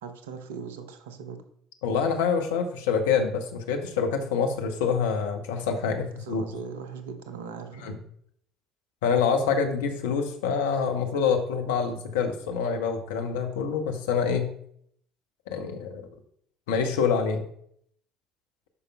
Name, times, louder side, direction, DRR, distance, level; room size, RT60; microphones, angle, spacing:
voice 1, 0.0-1.4 6.2-8.0, right 6 dB, 75° right, 8 dB, 0.8 m, -39 dB
voice 2, 1.8-6.4 7.8-7.9 9.0-14.5 15.5-16.0 16.7-17.4, left 6 dB, 75° left, 5 dB, 1.0 m, -26 dB
11.0 x 5.2 x 2.3 m, 0.66 s
hypercardioid pair, 60°, 0 cm